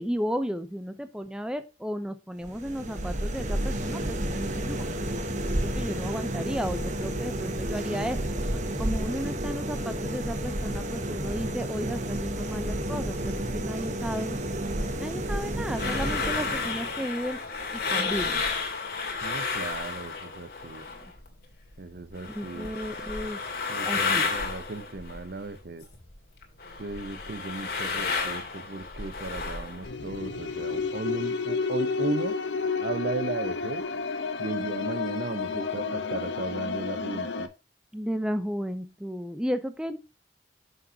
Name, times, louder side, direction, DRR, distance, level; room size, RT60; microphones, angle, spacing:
voice 1, 0.0-5.2 5.6-8.2 8.8-14.4 15.0-17.4 17.7-18.4 22.3-23.4 23.8-24.3 37.9-40.0, equal, 5° right, 0.6 m, -33 dB
sound 1, 2.4-17.1, right 1 dB, 40° right, 1.1 m, -31 dB
sound 2, 15.4-21.3 21.5-26.1 26.4-29.9, left 4 dB, 55° left, 2.3 m, -32 dB
voice 2, 19.2-20.9 21.8-22.7 23.7-25.8 26.8-32.4 32.8-33.8 34.4-37.5, right 3 dB, 60° right, 0.8 m, -35 dB
sound 3, 29.8-37.5, left 4 dB, 85° left, 1.0 m, -31 dB
9.3 x 6.5 x 2.8 m
head